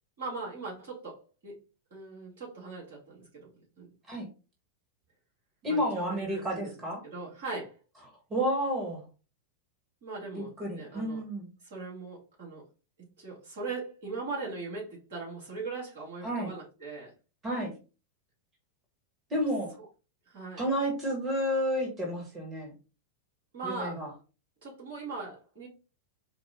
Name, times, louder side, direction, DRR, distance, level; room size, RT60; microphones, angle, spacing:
voice 1, 0.2-1.6 1.9-3.5 3.8-3.9 5.6-7.8 10.0-11.2 11.6-12.7 13.2-17.1 19.8-19.9 20.3-20.7 23.5-24.1 24.6-25.7, right 3 dB, 60° right, -3 dB, 2.2 m, -40 dB
voice 2, 5.6-7.0 8.3-9.0 10.3-11.5 16.2-16.5 17.4-17.7 19.3-19.7 20.6-22.7 23.6-24.1, equal, 25° right, -1 dB, 1.6 m, -31 dB
4.6 x 2.4 x 3.7 m, 0.32 s
figure-of-eight pair, 90°, 0 cm